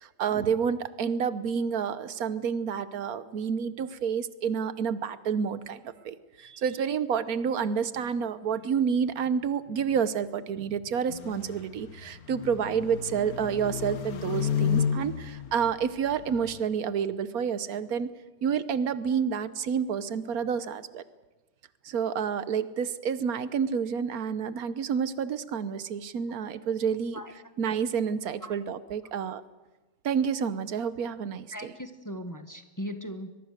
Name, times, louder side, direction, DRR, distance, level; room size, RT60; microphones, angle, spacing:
voice 1, 0.0-18.1 18.4-21.0 21.8-27.2 27.6-29.4 30.0-31.7, right 7 dB, 80° right, 14 dB, 1.4 m, -29 dB
sound 1, 11.1-16.6, left 8 dB, 85° left, 1.6 m, -32 dB
voice 2, 31.5-33.4, equal, 15° left, 7 dB, 1.2 m, -38 dB
22.5 x 22.0 x 6.6 m, 1.1 s
omnidirectional pair, 1.5 m